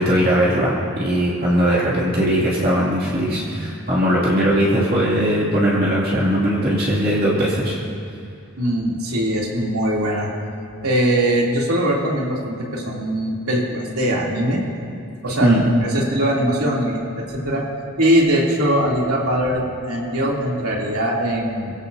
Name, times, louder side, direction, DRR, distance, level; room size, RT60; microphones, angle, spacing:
voice 1, 0.0-7.8 15.4-15.6, equal, 40° right, -7 dB, 2.6 m, -19 dB
voice 2, 8.6-10.3 10.8-14.6 15.2-17.6 18.0-21.7, right 1 dB, 90° right, -3 dB, 3.2 m, -21 dB
24.0 x 16.0 x 2.8 m, 2.5 s
head